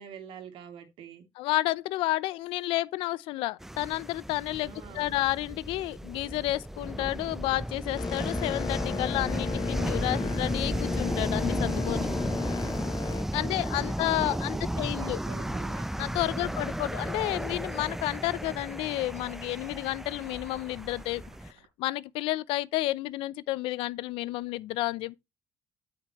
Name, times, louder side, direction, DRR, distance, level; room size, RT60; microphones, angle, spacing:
voice 1, 0.0-1.2 4.6-5.1 13.4-15.9 16.3-16.8, right 8 dB, 75° right, 2.8 m, -46 dB
voice 2, 1.4-12.1 13.3-15.2 16.0-21.2 21.8-25.2, left 17 dB, 80° left, 0.6 m, -31 dB
sound 1, 3.6-21.5, right 1 dB, 5° right, 0.6 m, -34 dB
Boat Water vehicle, 7.9-13.3, left 8 dB, 45° left, 0.9 m, -35 dB
sound 2, 13.8-21.7, right 7 dB, 90° right, 4.7 m, -60 dB
8.7 x 7.8 x 3.1 m
supercardioid pair, 80°, 9 cm